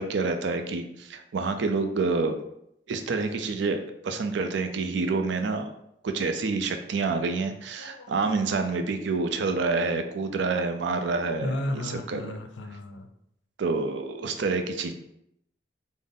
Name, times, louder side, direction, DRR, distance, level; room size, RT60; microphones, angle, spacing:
voice 1, 0.0-2.4 2.9-5.7 6.0-12.3 13.6-14.9, right 3 dB, 80° right, 6 dB, 0.4 m, -28 dB
voice 2, 7.8-8.1 9.2-9.3 9.7-9.8 11.4-13.1, left 1 dB, 85° left, 7 dB, 0.4 m, -34 dB
3.8 x 2.0 x 3.6 m, 0.76 s
head